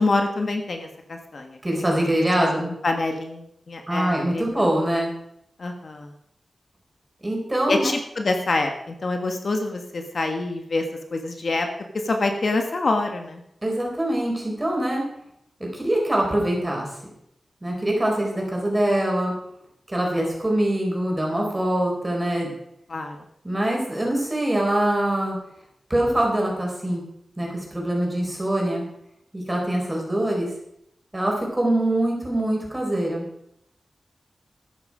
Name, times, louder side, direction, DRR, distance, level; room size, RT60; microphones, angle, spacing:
voice 1, 0.0-1.6 1.9-2.0 2.4-4.7 5.6-6.1 7.7-10.8 11.1-11.7 12.0-13.4 22.9-23.1, left 3 dB, 55° left, 4 dB, 1.4 m, -26 dB
voice 2, 1.6-2.7 3.9-5.1 7.2-8.0 13.6-15.0 15.7-16.9 17.6-19.3 19.9-22.5 23.4-25.4 25.9-27.0 27.4-28.8 29.3-30.5 31.1-33.3, right 1 dB, 15° right, -1 dB, 4.9 m, -23 dB
13.0 x 9.8 x 5.0 m, 0.77 s
wide cardioid pair, 90°, 0 cm